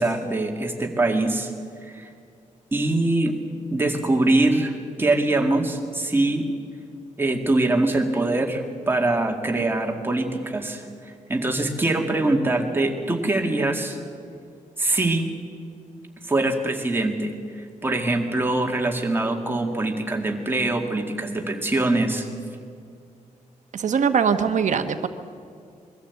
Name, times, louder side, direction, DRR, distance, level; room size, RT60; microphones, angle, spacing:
voice 1, 0.0-1.5 1.9-2.1 2.7-3.4 3.7-6.5 7.2-14.0 14.8-15.3 16.3-22.3, right 2 dB, 15° right, 2 dB, 2.1 m, -23 dB
voice 2, 23.7-25.1, right 6 dB, 65° right, 8 dB, 1.2 m, -21 dB
22.5 x 14.5 x 8.3 m, 2.3 s
wide cardioid pair, 155°, 13 cm